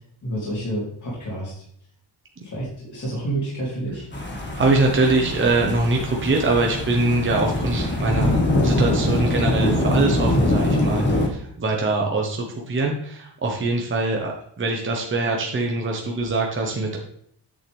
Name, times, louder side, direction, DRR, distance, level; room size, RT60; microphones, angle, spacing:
voice 1, 0.2-1.6 2.4-4.0, right 1 dB, 45° left, -8 dB, 3.2 m, -29 dB
sound 1, 4.1-11.3, left 1 dB, 25° left, 1.6 m, -23 dB
voice 2, 4.5-17.0, right 3 dB, 25° right, 0 dB, 1.1 m, -23 dB
8.7 x 6.6 x 3.5 m, 0.67 s
wide cardioid pair, 140°, 43 cm